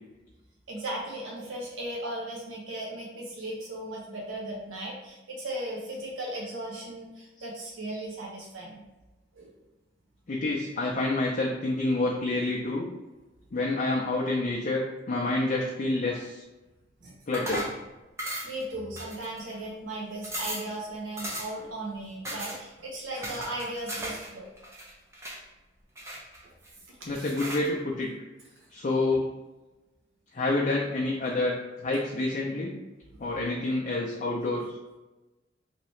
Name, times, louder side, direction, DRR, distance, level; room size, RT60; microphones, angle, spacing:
voice 1, 0.7-8.8 9.3-9.5 16.1-16.2 17.0-17.1 18.4-24.5 26.4-26.5 26.9-27.3, right 1 dB, 90° right, -3 dB, 0.7 m, -37 dB
voice 2, 10.3-12.9 13.5-16.4 17.3-17.7 27.1-28.1 28.7-29.3 30.3-32.7 33.2-34.8, left 2 dB, 40° left, -3 dB, 0.4 m, -28 dB
sound 1, 17.3-17.8 18.2-18.6 19.0-19.6 19.9-20.0 20.2-20.7 21.2-21.6 22.2-22.6 23.2-24.3 24.6-25.4 26.0-26.7 27.3-27.7, equal, 15° right, 0.6 m, -36 dB
3.1 x 2.8 x 3.0 m, 1.1 s
head